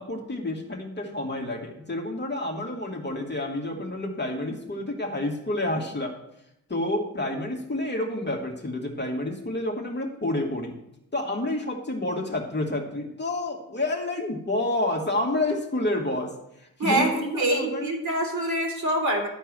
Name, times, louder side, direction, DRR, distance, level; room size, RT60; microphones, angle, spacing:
voice 1, 0.0-6.1 6.7-10.7 11.1-16.3 16.8-17.9, left 1 dB, 25° left, 1 dB, 2.3 m, -29 dB
voice 2, 16.8-19.3, right 1 dB, 45° right, 0 dB, 3.6 m, -25 dB
12.0 x 4.5 x 7.6 m, 0.82 s
hypercardioid pair, 50°, 41 cm